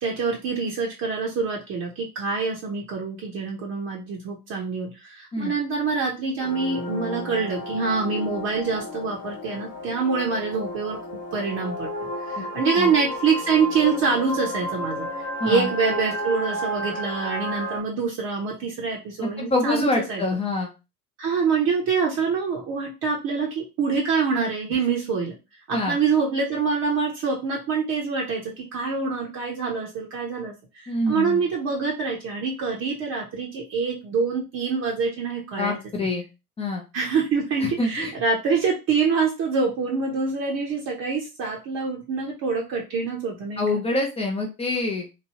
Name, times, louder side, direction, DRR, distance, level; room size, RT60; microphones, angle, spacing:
voice 1, 0.0-11.0 11.3-15.1 15.4-20.2 21.2-25.4 25.7-35.8 36.9-43.8, right 5 dB, 35° right, -2 dB, 0.8 m, -25 dB
sound 1, 6.4-17.8, equal, 50° left, 1.2 m, -32 dB
voice 2, 19.2-20.7 25.7-26.0 30.9-31.4 35.6-36.3 36.6-36.8 37.6-38.1 43.6-45.1, left 2 dB, 15° left, 1 dB, 0.6 m, -26 dB
3.0 x 2.6 x 2.8 m, 0.28 s
figure-of-eight pair, 85°, 48 cm